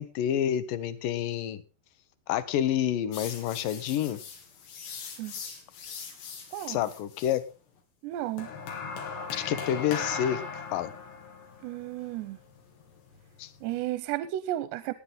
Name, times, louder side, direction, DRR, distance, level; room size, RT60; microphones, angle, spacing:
voice 1, 0.0-1.6 2.3-4.2 6.7-7.4 9.3-10.4 10.7-10.9 13.4-13.5, left 10 dB, 70° left, 14 dB, 2.3 m, -28 dB
sound 1, 3.1-7.4 8.4-13.8, left 5 dB, 85° left, 4.9 m, -39 dB
voice 2, 8.0-8.5 11.6-12.4 13.6-14.9, right 14 dB, 90° right, 14 dB, 2.9 m, -33 dB
19.0 x 9.9 x 3.9 m, 0.32 s
omnidirectional pair, 4.7 m